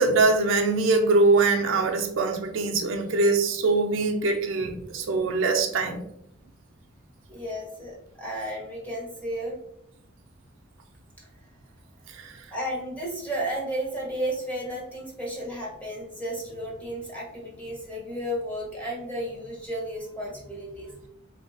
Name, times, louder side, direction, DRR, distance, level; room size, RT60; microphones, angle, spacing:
voice 1, 0.0-6.0 12.1-12.4, right 3 dB, 70° right, 3 dB, 0.4 m, -23 dB
voice 2, 7.3-9.6 12.5-21.1, right 1 dB, 5° left, -4 dB, 1.0 m, -33 dB
3.2 x 2.7 x 2.6 m, 0.76 s
head